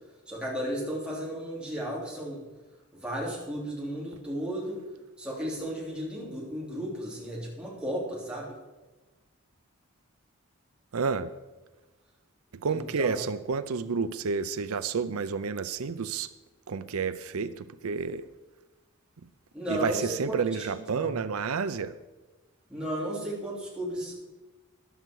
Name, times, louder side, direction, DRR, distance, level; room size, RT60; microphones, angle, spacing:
voice 1, 0.3-2.4 2.9-4.9 5.2-8.5 12.7-13.2 19.5-21.1 22.7-24.1, equal, 5° right, -5 dB, 3.3 m, -34 dB
voice 2, 10.9-11.3 12.5-16.3 16.7-18.2 19.7-21.9, right 5 dB, 85° right, 13 dB, 0.6 m, -30 dB
14.5 x 11.0 x 4.7 m, 1.2 s
head